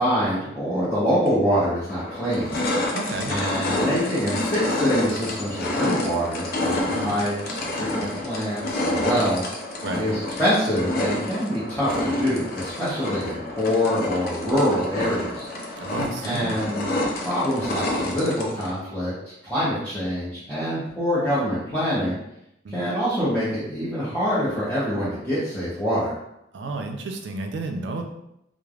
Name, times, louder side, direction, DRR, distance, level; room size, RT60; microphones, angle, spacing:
voice 1, 0.0-3.0 3.3-9.5 9.9-15.5 16.2-16.9 17.2-19.1 19.4-22.2 22.7-26.1, equal, 10° left, -12 dB, 0.7 m, -25 dB
sound 1, 1.3-1.4 1.9-18.7, left 1 dB, 55° left, 0.4 m, -28 dB
voice 2, 2.9-3.3 6.9-7.1 9.8-10.1 15.8-16.6 22.6-22.8 26.5-28.0, right 3 dB, 70° right, 4 dB, 0.4 m, -31 dB
3.1 x 2.0 x 2.3 m, 0.82 s
head